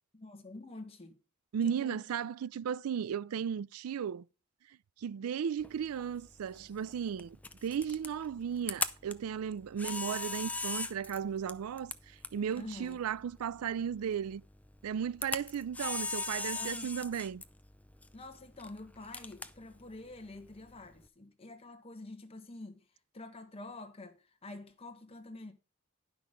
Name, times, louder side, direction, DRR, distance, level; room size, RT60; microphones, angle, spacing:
voice 1, 0.1-1.2 1.6-2.0 12.6-13.0 16.5-17.1 18.1-22.8 23.1-25.5, left 2 dB, 25° left, 1.3 m, -47 dB
voice 2, 1.5-4.2 5.0-7.4 7.6-14.4 14.8-17.4, right 8 dB, 85° right, 0.4 m, -35 dB
Camera, 5.6-21.1, left 3 dB, 5° left, 0.4 m, -41 dB
10.5 x 6.0 x 5.0 m
head